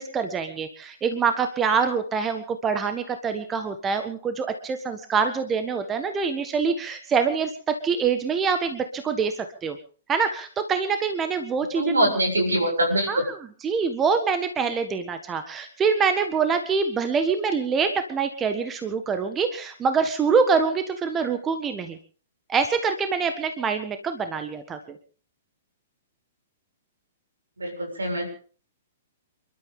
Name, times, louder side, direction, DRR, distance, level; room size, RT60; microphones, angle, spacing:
voice 1, 0.0-9.8 10.1-11.9 13.1-13.4 13.6-22.0 22.5-25.0, right 5 dB, 20° right, 8 dB, 1.6 m, -25 dB
voice 2, 11.7-13.2 27.6-28.4, right 1 dB, 75° right, 4 dB, 7.4 m, -23 dB
28.5 x 12.5 x 3.8 m, 0.42 s
figure-of-eight pair, 110°, 0 cm